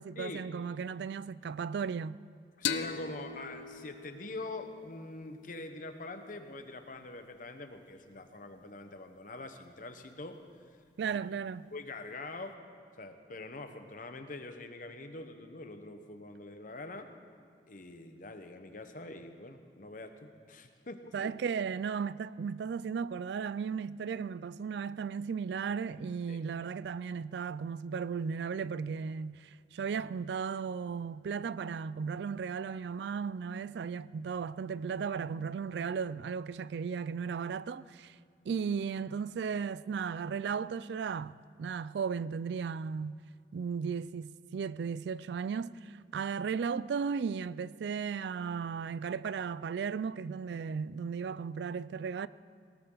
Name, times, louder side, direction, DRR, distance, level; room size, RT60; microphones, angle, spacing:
voice 1, 0.0-2.2 11.0-11.7 21.1-38.2 38.5-43.2 43.5-52.3, right 6 dB, 65° right, 0.3 m, -35 dB
voice 2, 2.6-10.4 11.1-11.2 11.7-12.6 13.0-17.1 17.7-21.3 26.3-26.4, left 2 dB, 45° left, 1.1 m, -44 dB
sound 1, 2.7-6.0, left 7 dB, 70° left, 0.7 m, -39 dB
19.5 x 18.5 x 3.9 m
head